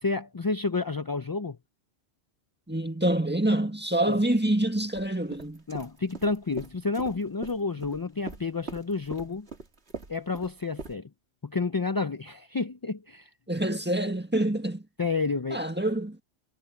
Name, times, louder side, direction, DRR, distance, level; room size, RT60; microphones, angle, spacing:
voice 1, 0.0-1.6 4.0-4.2 5.7-9.5 10.1-11.1 11.4-13.3 15.0-15.6, left 4 dB, 30° left, 0.4 m, -30 dB
voice 2, 2.7-5.6 13.5-14.8 15.5-16.2, right 1 dB, 10° right, 1.7 m, -26 dB
sound 1, 4.9-5.1 5.3-8.0 8.3-10.9, right 4 dB, 65° right, 2.5 m, -40 dB
omnidirectional pair, 1.2 m